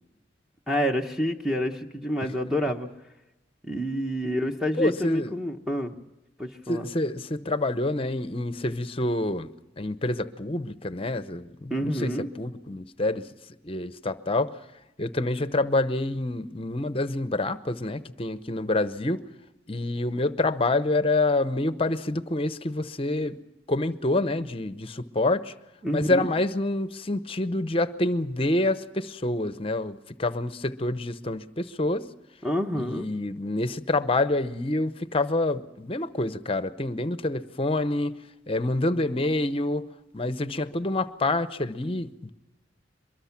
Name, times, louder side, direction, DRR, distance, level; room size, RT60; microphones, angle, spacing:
voice 1, 0.7-2.9 3.6-5.9 6.4-6.9 11.7-12.3 25.8-26.3 32.4-33.1, equal, ahead, 3 dB, 1.0 m, -28 dB
voice 2, 4.8-5.3 6.7-9.5 9.8-13.3 13.6-14.5 15.0-19.2 19.7-23.4 23.7-25.5 25.9-32.1 32.7-38.2 38.5-39.9 40.1-42.3, left 2 dB, 30° left, 13 dB, 0.8 m, -27 dB
23.5 x 22.0 x 5.9 m, 0.94 s
head